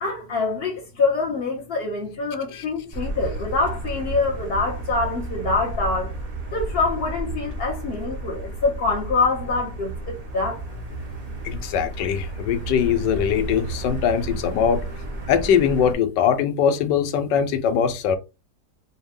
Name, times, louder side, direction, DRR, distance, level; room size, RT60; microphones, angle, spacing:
voice 1, 0.0-6.1 6.5-10.6, left 3 dB, 45° left, 0.8 m, -25 dB
Motor vehicle (road), 2.9-15.9, right 2 dB, 85° right, 0.3 m, -32 dB
voice 2, 11.4-14.8 15.3-18.2, left 8 dB, 75° left, 1.2 m, -21 dB
4.3 x 2.2 x 3.6 m
omnidirectional pair, 2.1 m